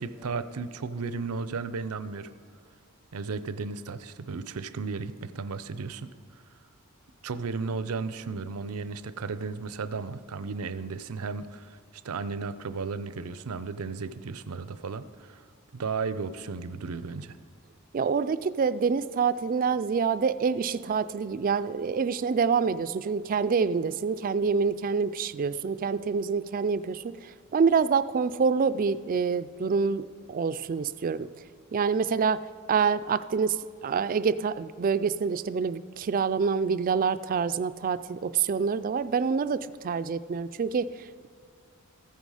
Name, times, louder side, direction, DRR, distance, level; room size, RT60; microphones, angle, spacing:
voice 1, 0.0-2.3 3.1-6.1 7.2-11.8 12.0-15.4 15.7-17.4, right 4 dB, 90° right, 14 dB, 0.5 m, -34 dB
voice 2, 17.9-27.2 27.5-30.0 30.3-31.3 31.7-33.6 33.8-40.9, right 5 dB, 40° right, 15 dB, 0.3 m, -26 dB
15.0 x 9.3 x 4.9 m, 2.1 s
head